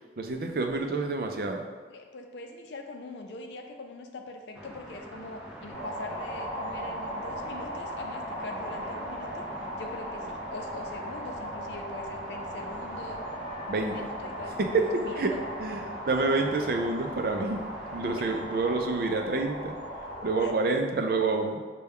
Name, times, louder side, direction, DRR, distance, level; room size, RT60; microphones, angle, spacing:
voice 1, 0.2-1.6 13.7-13.9 14.7-14.8 15.1-15.3 15.6-17.6 17.9-19.8 20.2-21.6, right 3 dB, 55° right, 4 dB, 0.4 m, -28 dB
voice 2, 1.9-9.5 9.8-13.2 13.8-14.6 15.0-15.4 20.4-20.5, left 2 dB, 80° left, 4 dB, 0.5 m, -42 dB
sound 1, 4.5-18.8, equal, 5° right, 0.6 m, -45 dB
sound 2, 5.7-20.6, equal, 25° left, 0.8 m, -38 dB
5.5 x 2.2 x 3.5 m, 1.5 s
head